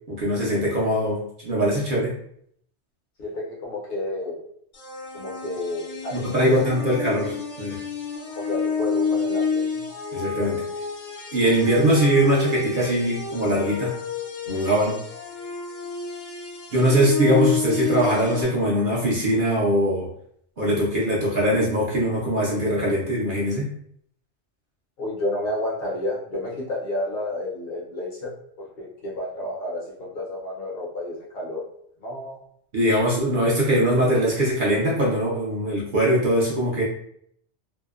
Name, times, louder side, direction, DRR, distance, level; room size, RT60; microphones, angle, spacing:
voice 1, 0.1-2.1 6.1-7.8 10.1-10.6 11.3-14.0 14.5-15.0 16.7-20.1 20.6-23.7 32.7-36.8, equal, 55° right, -5 dB, 0.6 m, -22 dB
voice 2, 3.2-4.4 5.1-6.2 6.5-6.7 8.3-9.8 25.0-28.3 28.6-31.6 32.0-32.4, left 1 dB, 60° left, -4 dB, 0.8 m, -30 dB
sound 1, 4.7-18.4, left 4 dB, 80° left, 1.1 m, -29 dB
2.7 x 2.0 x 2.3 m, 0.68 s
omnidirectional pair, 1.2 m